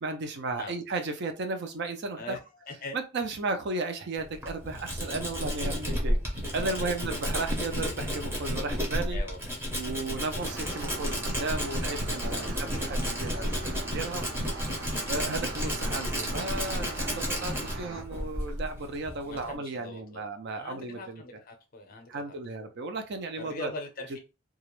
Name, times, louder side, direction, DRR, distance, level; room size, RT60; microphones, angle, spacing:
voice 1, 0.0-2.4 2.9-9.2 9.7-14.2 15.1-21.4 22.1-23.7, right 3 dB, 55° right, 0.5 m, -34 dB
voice 2, 2.2-3.0 6.6-6.9 9.1-9.5 12.3-12.5 13.5-13.7 19.2-20.2 20.6-22.2 23.4-24.2, left 2 dB, 45° left, 0.6 m, -41 dB
Tools, 4.2-19.6, equal, 10° right, 0.6 m, -32 dB
Late Night Side of the Road Ambience, 10.4-18.0, right 2 dB, 70° right, 0.9 m, -41 dB
2.3 x 2.0 x 3.0 m
head